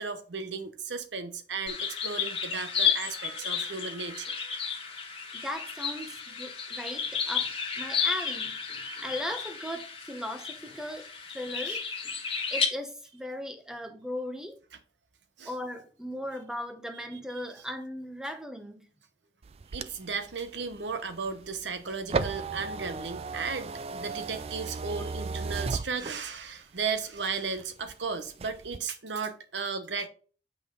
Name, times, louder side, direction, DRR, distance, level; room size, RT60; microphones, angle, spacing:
voice 1, 0.0-4.9 11.6-11.8 15.4-15.5 19.7-30.1, right 5 dB, 80° right, 1.0 m, -35 dB
sound 1, 1.7-12.7, left 6 dB, 30° left, 1.2 m, -32 dB
voice 2, 5.3-11.1 11.3-11.8 12.0-12.1 12.5-14.5 15.4-18.8, left 1 dB, 5° right, 0.9 m, -38 dB
sound 2, 19.4-26.5 27.0-27.9 28.3-28.8, right 4 dB, 35° right, 0.3 m, -35 dB
7.0 x 5.5 x 3.8 m
head